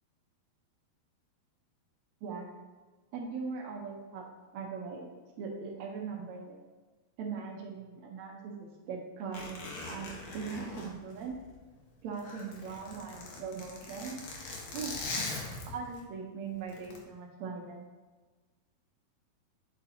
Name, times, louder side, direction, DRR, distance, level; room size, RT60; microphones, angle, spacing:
voice 1, 3.1-4.2 4.5-5.1 5.4-6.6 7.2-11.4 12.0-14.2 14.7-14.9 15.2-15.3 15.7-17.9, right 5 dB, 75° right, -1 dB, 1.6 m, -40 dB
Zipper (clothing), 9.3-11.7 12.1-16.0 16.7-17.0, left 3 dB, 65° left, 2.0 m, -41 dB
9.3 x 6.9 x 2.8 m, 1.3 s
omnidirectional pair, 4.6 m